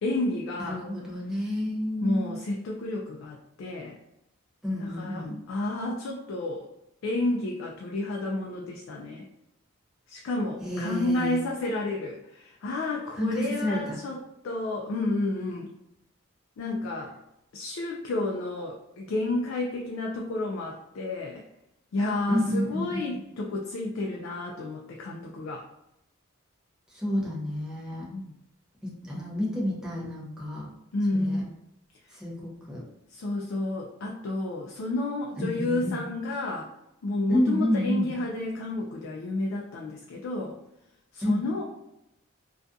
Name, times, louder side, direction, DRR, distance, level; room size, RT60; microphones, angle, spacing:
voice 1, 0.0-0.9 2.0-4.0 4.8-6.7 7.0-9.3 10.1-15.7 16.6-17.2 17.5-21.4 21.9-25.7 28.1-28.3 30.9-31.5 33.1-36.7 37.0-40.6 41.1-41.6, left 2 dB, 65° left, -1 dB, 0.3 m, -31 dB
voice 2, 0.6-2.3 4.6-5.4 10.6-11.4 13.2-14.0 22.3-23.0 26.9-28.1 28.8-30.7 31.2-31.4 32.1-32.8 35.4-36.0 37.3-38.1 41.2-41.4, left 1 dB, 5° right, -6 dB, 0.6 m, -29 dB
2.4 x 2.3 x 2.6 m, 0.88 s
head